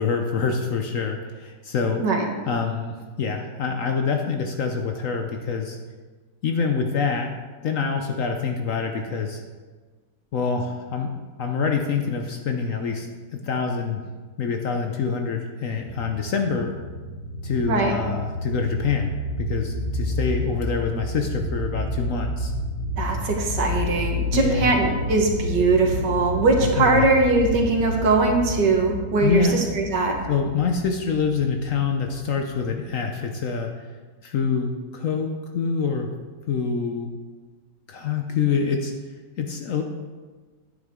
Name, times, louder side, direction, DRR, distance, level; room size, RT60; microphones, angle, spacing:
voice 1, 0.0-2.0 2.5-5.8 6.4-7.3 7.6-9.4 10.3-11.1 11.4-14.0 14.4-16.7 17.4-19.1 19.4-22.5 24.3-24.7 26.6-27.1 29.2-29.6 30.3-33.7 34.2-36.1 36.4-37.1 37.9-38.9 39.4-39.8, left 5 dB, 60° left, 4 dB, 0.9 m, -26 dB
sound 1, 15.8-32.8, left 1 dB, 35° left, 2.0 m, -30 dB
voice 2, 23.0-30.1, right 3 dB, 75° right, 1 dB, 1.9 m, -21 dB
10.0 x 8.7 x 3.7 m, 1.4 s
omnidirectional pair, 1.9 m